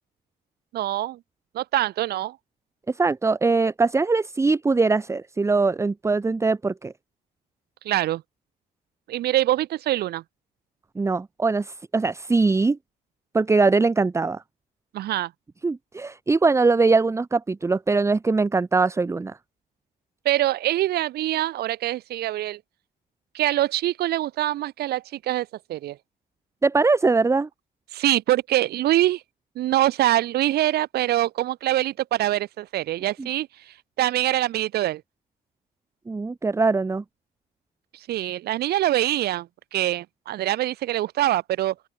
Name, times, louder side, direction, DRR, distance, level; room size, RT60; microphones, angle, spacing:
voice 1, 0.7-1.2 1.5-2.4 7.8-8.2 9.1-10.2 14.9-15.3 20.2-22.6 23.3-26.0 27.9-29.2 29.6-33.5 34.0-35.0 38.1-41.7, right 14 dB, 70° right, 2.4 m, -24 dB
voice 2, 2.9-6.9 10.9-12.8 13.3-14.4 15.6-19.4 26.6-27.5 33.2-33.3 36.1-37.0, right 3 dB, 15° right, 1.0 m, -22 dB
open air
cardioid pair, 110°, 17 cm